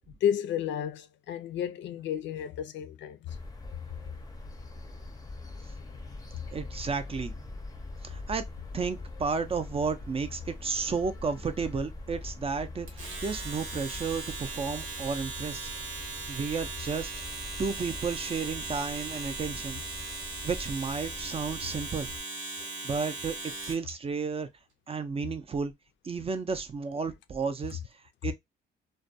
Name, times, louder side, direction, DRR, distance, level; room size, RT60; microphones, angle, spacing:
voice 1, 0.2-3.4 22.6-22.7, left 9 dB, 65° left, 0.4 m, -32 dB
sound 1, 3.3-22.2, left 2 dB, 20° left, 0.5 m, -43 dB
voice 2, 6.5-7.3 8.0-8.4 8.7-15.7 16.3-17.1 17.6-19.8 20.4-22.1 22.8-24.5 24.9-25.7 26.0-27.8 28.2-28.3, right 5 dB, 30° right, 0.4 m, -32 dB
Domestic sounds home sounds, 12.9-23.9, right 3 dB, 85° right, 0.9 m, -39 dB
2.3 x 2.1 x 2.6 m
cardioid pair, 90°, 20 cm